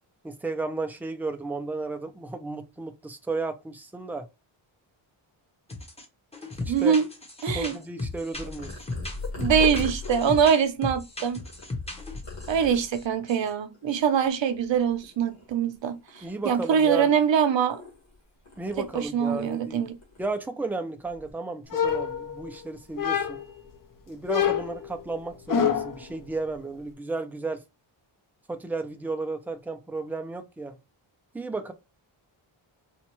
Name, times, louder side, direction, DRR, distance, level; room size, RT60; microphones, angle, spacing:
voice 1, 0.2-4.3 6.5-6.9 7.5-8.8 16.2-17.1 18.6-19.9 20.2-23.4 24.1-27.6 28.5-30.8 31.3-31.7, right 3 dB, 5° right, 0.4 m, -33 dB
sound 1, 5.7-6.1 6.3-12.6 12.9-13.0 13.3-13.5, left 2 dB, 15° left, 0.8 m, -36 dB
voice 2, 6.7-7.1 7.4-7.8 9.4-11.4 12.5-17.8 18.9-20.0, right 7 dB, 65° right, 0.7 m, -24 dB
Purr, 8.3-13.2 13.7-14.2 14.5-15.7 16.1-18.2 18.4-19.7 20.0-20.3 21.0-21.3, left 3 dB, 90° left, 1.9 m, -37 dB
sound 2, 21.7-22.6 23.0-23.6 24.3-26.0, left 8 dB, 40° left, 0.6 m, -26 dB
4.2 x 2.3 x 3.0 m
wide cardioid pair, 150°, 49 cm